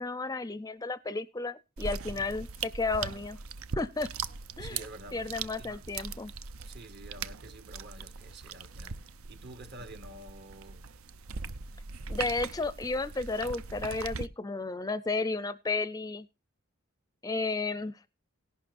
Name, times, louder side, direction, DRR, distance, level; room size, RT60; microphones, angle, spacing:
voice 1, 0.0-3.4 3.8-4.1 4.6-4.8 5.1-6.3 12.1-16.3 17.2-18.1, left 3 dB, 15° left, 0.5 m, -33 dB
sound 1, 1.8-14.3, right 5 dB, 75° right, 0.6 m, -40 dB
voice 2, 4.6-5.9 6.6-10.8, right 1 dB, 55° right, 1.5 m, -49 dB
17.5 x 11.5 x 2.5 m
head